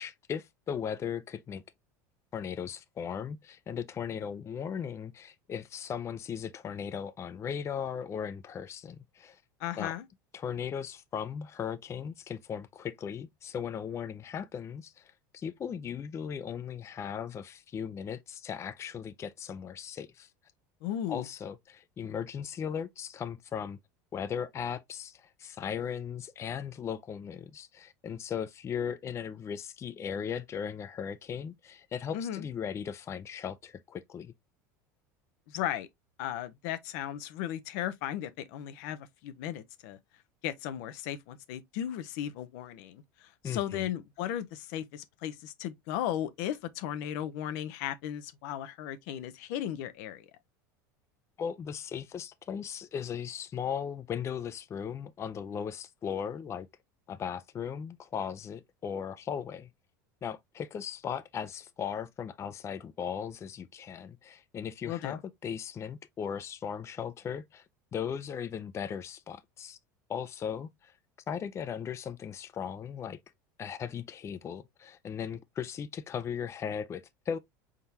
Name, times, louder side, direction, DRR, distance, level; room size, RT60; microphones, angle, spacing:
voice 1, 0.0-1.6 2.3-9.4 9.8-9.9 10.3-20.3 21.1-23.8 24.1-34.3 43.4-43.9 51.4-56.7 57.1-59.7 60.2-67.6 67.9-69.8 70.1-70.9 71.3-73.2 73.6-77.4, left 7 dB, 30° left, 0.5 m, -37 dB
voice 2, 9.6-10.0 20.8-21.2 32.1-32.4 35.5-35.9 36.2-40.0 40.4-50.3 64.9-65.2, left 11 dB, 70° left, 0.7 m, -36 dB
4.5 x 3.7 x 2.6 m
supercardioid pair, 100°, 10 cm